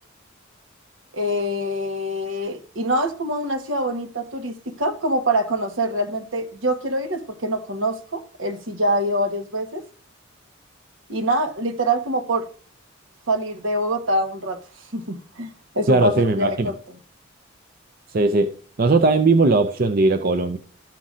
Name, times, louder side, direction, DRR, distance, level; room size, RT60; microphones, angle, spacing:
voice 1, 1.1-9.8 11.1-12.5 13.3-14.6 14.9-16.8, right 1 dB, 70° right, 1.1 m, -25 dB
voice 2, 15.9-16.7 18.1-18.5 18.8-20.6, right 3 dB, 45° right, 0.5 m, -18 dB
14.0 x 5.8 x 2.5 m
head